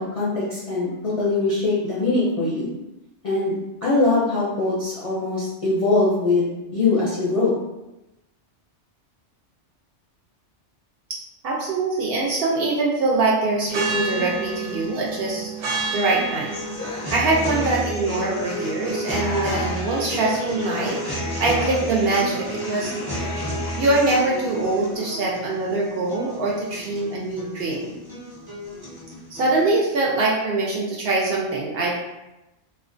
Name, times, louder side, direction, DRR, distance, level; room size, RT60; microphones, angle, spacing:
voice 1, 0.0-2.7 3.2-3.6 3.8-7.5, left 3 dB, 45° left, -9 dB, 0.4 m, -22 dB
voice 2, 11.4-15.5 15.9-16.5 16.8-21.0 21.3-23.4 23.8-28.0 29.3-32.0, right 2 dB, 65° right, -3 dB, 0.7 m, -23 dB
sound 1, 13.6-29.6, equal, 30° right, 0.5 m, -31 dB
sound 2, 13.7-25.0, right 4 dB, 90° right, 0.9 m, -33 dB
2.4 x 2.1 x 2.5 m, 0.95 s
omnidirectional pair, 1.2 m